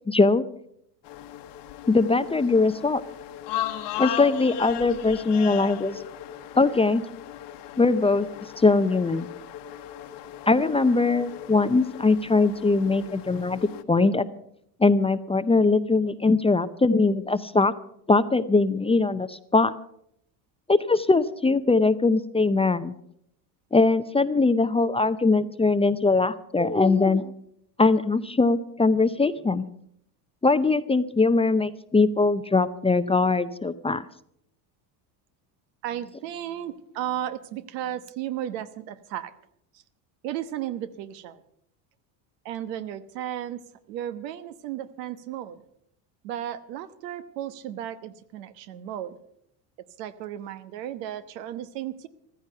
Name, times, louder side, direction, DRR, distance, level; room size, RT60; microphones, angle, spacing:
voice 1, 0.1-0.4 1.9-3.0 4.0-6.0 6.6-7.0 7.8-8.3 8.6-9.3 10.5-13.6 13.9-14.3 14.8-17.7 18.1-19.7 20.7-22.9 23.7-27.3 27.8-29.6 30.4-34.0, left 3 dB, 10° left, 12 dB, 0.5 m, -21 dB
sound 1, 1.0-13.8, left 12 dB, 55° left, 1.2 m, -37 dB
voice 2, 35.8-39.3 40.2-41.4 42.4-43.6 43.9-45.6 46.2-49.2 50.0-52.1, right 11 dB, 80° right, 12 dB, 1.2 m, -34 dB
15.0 x 13.5 x 5.6 m, 0.72 s
supercardioid pair, 95°, 49 cm